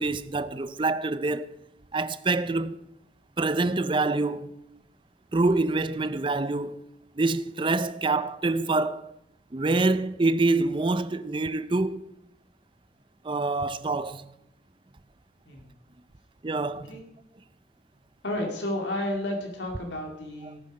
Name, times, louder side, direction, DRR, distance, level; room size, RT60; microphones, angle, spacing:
voice 1, 0.0-1.5 1.9-2.8 3.4-4.5 5.3-6.8 7.2-9.1 9.5-12.1 13.2-14.3 16.4-17.0, right 3 dB, 30° right, 0.5 m, -26 dB
voice 2, 18.2-20.6, left 1 dB, 85° left, 2.4 m, -31 dB
18.0 x 9.6 x 5.3 m
head